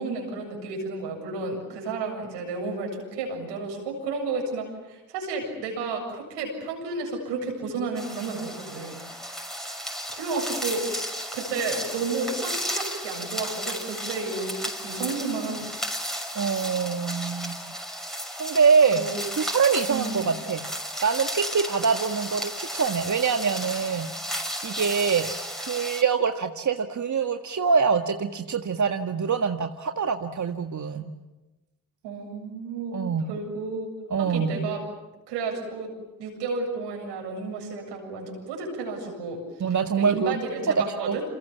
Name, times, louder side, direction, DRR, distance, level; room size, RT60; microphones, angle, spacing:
voice 1, 0.0-9.0 9.3-9.4 10.1-10.8 11.3-15.8 19.0-19.2 19.9-20.3 32.0-33.0 33.3-33.9 34.2-34.8 35.3-35.9 36.2-39.4 40.0-41.2, right 4 dB, 85° right, 1 dB, 7.7 m, -32 dB
sound 1, 8.0-26.0, equal, ahead, 6.3 m, -34 dB
voice 2, 16.3-17.6 18.4-19.0 19.4-20.7 21.0-24.4 24.6-31.1 32.9-33.3 34.1-34.7 39.6-40.4 41.1-41.2, right 5 dB, 45° right, 6 dB, 1.8 m, -24 dB
29.0 x 28.0 x 7.2 m, 1.1 s
hypercardioid pair, 40°, 42 cm